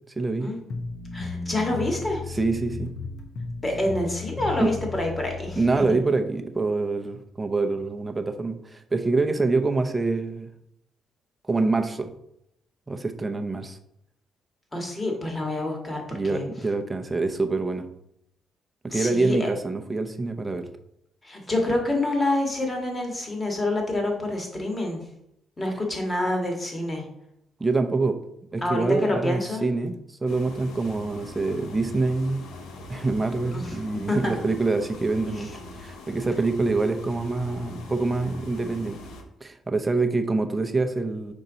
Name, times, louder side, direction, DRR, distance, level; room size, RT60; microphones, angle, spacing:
voice 1, 0.2-0.5 2.3-2.9 4.6-4.7 5.6-10.5 11.5-12.1 12.9-13.8 16.1-17.8 18.9-20.7 27.6-28.2 28.5-29.9 30.2-32.4 32.9-35.5 35.8-39.0 39.4-41.3, right 3 dB, 20° right, 6 dB, 0.7 m, -25 dB
sound 1, 0.7-6.0, left 4 dB, 65° left, 1.0 m, -35 dB
voice 2, 1.1-2.2 3.6-5.6 14.7-16.5 18.9-19.5 21.2-25.0 25.6-27.0 28.6-29.7 33.5-33.7 34.1-34.3 35.3-35.4, left 1 dB, 25° left, 1 dB, 1.7 m, -27 dB
sound 2, 30.3-39.2, left 3 dB, 85° left, 0.9 m, -42 dB
5.5 x 4.5 x 4.0 m, 0.78 s
cardioid pair, 90°, 0 cm